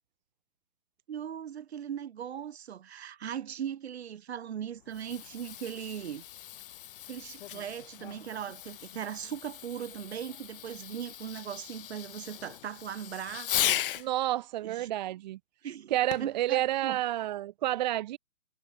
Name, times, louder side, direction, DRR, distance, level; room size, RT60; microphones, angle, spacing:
voice 1, 1.1-6.2 7.1-14.1 14.6-14.9 15.6-17.0, right 9 dB, 45° right, 3.1 m, -39 dB
Fireworks, 4.8-14.1 16.1-16.4 17.1-17.2, left 12 dB, 40° left, 4.4 m, -37 dB
voice 2, 14.0-15.4 15.9-18.2, right 14 dB, 30° right, 1.7 m, -30 dB
figure-of-eight pair, 140°, 43 cm